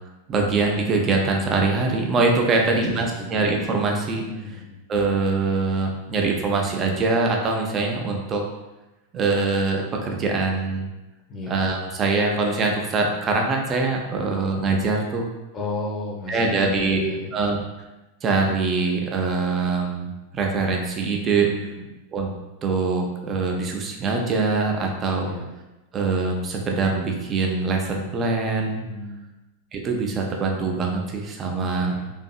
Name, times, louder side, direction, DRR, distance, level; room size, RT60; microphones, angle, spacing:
voice 1, 0.3-4.2 4.9-8.4 9.1-10.9 11.5-15.3 16.3-17.0 17.3-17.6 18.2-21.5 22.1-22.3 22.6-25.3 25.9-28.8 29.7-31.9, right 3 dB, 25° right, 1 dB, 0.4 m, -23 dB
voice 2, 2.6-3.4 4.3-4.8 11.3-11.5 15.5-17.3 21.3-22.0 25.2-25.4 28.8-29.3 31.8-32.1, left 2 dB, 25° left, -1 dB, 0.6 m, -33 dB
2.6 x 2.6 x 2.2 m, 1.0 s
figure-of-eight pair, 90°, 0 cm